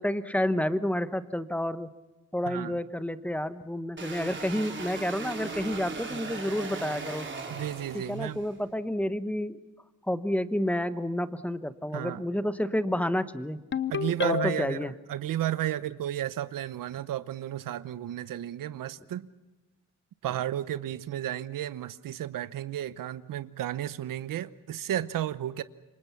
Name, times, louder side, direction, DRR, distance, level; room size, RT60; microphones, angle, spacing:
voice 1, 0.0-1.9 2.3-7.3 7.9-9.6 10.1-13.6 14.2-14.9, left 1 dB, 5° left, 12 dB, 1.1 m, -30 dB
voice 2, 2.5-2.8 7.5-8.4 11.9-12.2 13.9-14.8 15.1-19.3 20.2-25.6, right 12 dB, 85° right, 15 dB, 0.9 m, -33 dB
sound 1, 4.0-8.5, right 4 dB, 35° right, 3.6 m, -38 dB
Ringtone, 13.7-14.9, left 7 dB, 35° left, 0.8 m, -29 dB
27.5 x 24.0 x 5.9 m, 1.1 s
cardioid pair, 115°, 32 cm